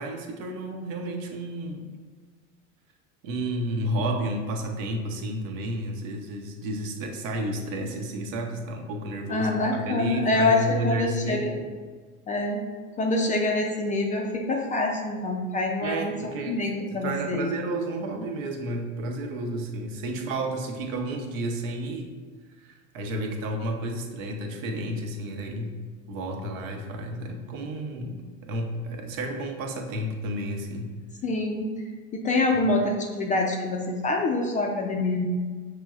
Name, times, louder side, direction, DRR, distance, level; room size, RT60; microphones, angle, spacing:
voice 1, 0.0-1.9 3.2-11.7 15.8-16.6 16.9-22.1 22.6-25.8 26.1-30.9, right 1 dB, 70° right, 3 dB, 0.8 m, -31 dB
voice 2, 9.3-11.5 12.3-12.6 13.0-16.1 16.5-17.5 31.2-31.7 32.1-35.3, left 2 dB, 20° left, 1 dB, 0.3 m, -25 dB
5.9 x 3.1 x 2.4 m, 1.5 s
hypercardioid pair, 95°, 41 cm